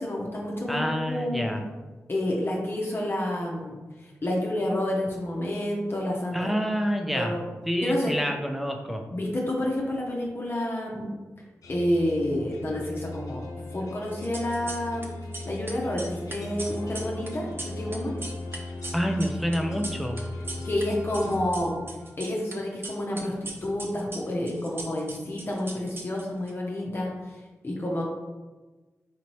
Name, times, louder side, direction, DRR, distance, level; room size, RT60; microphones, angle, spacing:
voice 1, 0.0-1.5 2.1-3.7 4.0-6.6 7.1-7.4 7.8-8.1 9.1-11.1 11.7-15.1 15.4-18.1 20.6-21.9 22.2-27.3 27.6-28.0, left 1 dB, 40° left, -2 dB, 0.7 m, -29 dB
voice 2, 0.7-1.6 6.3-7.3 7.7-9.0 18.9-20.2, equal, ahead, 4 dB, 0.6 m, -28 dB
sound 1, 11.6-22.3, left 2 dB, 80° left, 0.6 m, -38 dB
sound 2, 14.1-15.1 15.3-20.8 21.1-22.5 22.8-26.5, right 2 dB, 40° right, 0.7 m, -39 dB
4.3 x 2.7 x 3.1 m, 1.2 s
cardioid pair, 45°, 6 cm